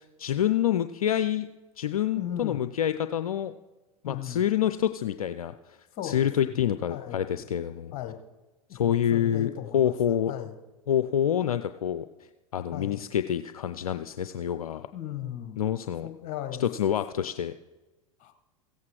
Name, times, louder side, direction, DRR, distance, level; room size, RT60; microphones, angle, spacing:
voice 1, 0.0-1.5 1.8-3.5 4.0-5.8 6.0-7.9 8.7-10.3 10.9-12.1 12.5-14.9 15.6-16.1 16.6-17.5, left 10 dB, 70° left, 10 dB, 0.5 m, -27 dB
voice 2, 2.2-2.6 4.0-4.4 5.9-6.5 6.9-7.2 7.9-8.2 8.7-10.5 12.7-13.0 14.9-15.6 16.0-16.6 18.2-18.3, left 11 dB, 40° left, 7 dB, 1.4 m, -37 dB
16.0 x 8.1 x 4.8 m, 1.1 s
figure-of-eight pair, 90°, 19 cm